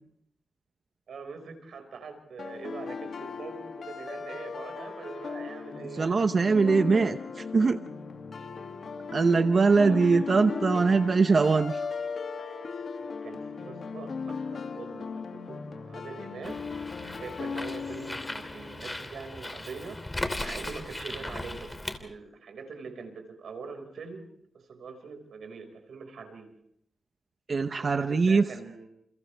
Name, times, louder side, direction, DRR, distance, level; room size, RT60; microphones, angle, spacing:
voice 1, 1.1-6.2 9.1-9.2 9.8-10.3 13.0-16.7 17.0-20.0 20.4-24.2 24.5-26.5 27.7-28.9, right 5 dB, 90° right, 4 dB, 5.4 m, -43 dB
sound 1, 2.4-19.3, left 5 dB, 60° left, 2.4 m, -37 dB
voice 2, 6.0-7.8 9.1-11.8 27.5-28.4, right 4 dB, 45° right, 8 dB, 0.8 m, -22 dB
Bird, 16.4-22.0, left 1 dB, 15° left, 2.9 m, -37 dB
29.5 x 29.0 x 3.5 m, 0.72 s
wide cardioid pair, 115°, 0 cm